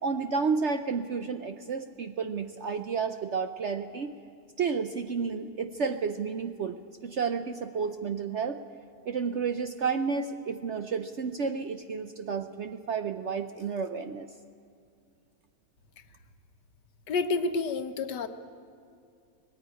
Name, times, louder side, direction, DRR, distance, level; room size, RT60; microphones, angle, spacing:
voice 1, 0.0-4.1 4.6-6.8 7.0-8.6 9.1-14.3, right 5 dB, 60° right, 9 dB, 0.8 m, -31 dB
voice 2, 17.1-18.3, left 4 dB, 80° left, 9 dB, 1.6 m, -29 dB
19.0 x 15.0 x 9.7 m, 2.5 s
omnidirectional pair, 1.8 m